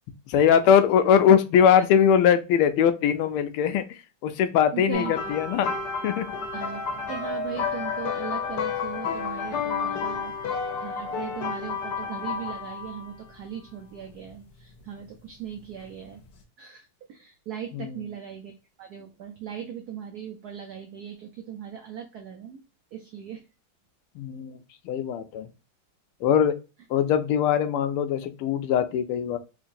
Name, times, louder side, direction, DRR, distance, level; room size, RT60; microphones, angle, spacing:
voice 1, 0.3-3.8 4.2-5.7 6.0-6.3 17.7-18.0 24.2-24.6 24.8-25.5 26.2-26.5 26.9-29.4, left 8 dB, 85° left, 10 dB, 1.5 m, -21 dB
voice 2, 4.7-5.3 6.5-6.8 7.1-16.2 16.6-22.6 22.9-23.4, right 9 dB, 90° right, 4 dB, 0.8 m, -39 dB
sound 1, 4.9-13.2 14.1-14.3 16.1-16.2, left 5 dB, 65° left, 1.2 m, -31 dB
3.7 x 3.2 x 2.5 m, 0.30 s
omnidirectional pair, 2.4 m